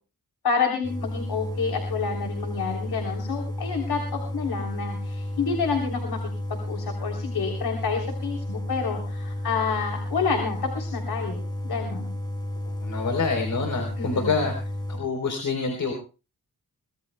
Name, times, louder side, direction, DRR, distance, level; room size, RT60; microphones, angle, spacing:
voice 1, 0.4-6.2 6.5-12.1 14.0-14.3, left 5 dB, 75° left, 2 dB, 3.4 m, -29 dB
sound 1, 0.8-15.0, left 1 dB, 10° left, 5.1 m, -32 dB
voice 2, 12.8-14.5 14.9-15.9, left 4 dB, 55° left, 3 dB, 3.9 m, -26 dB
24.0 x 19.5 x 2.3 m, 0.34 s
wide cardioid pair, 115°, 38 cm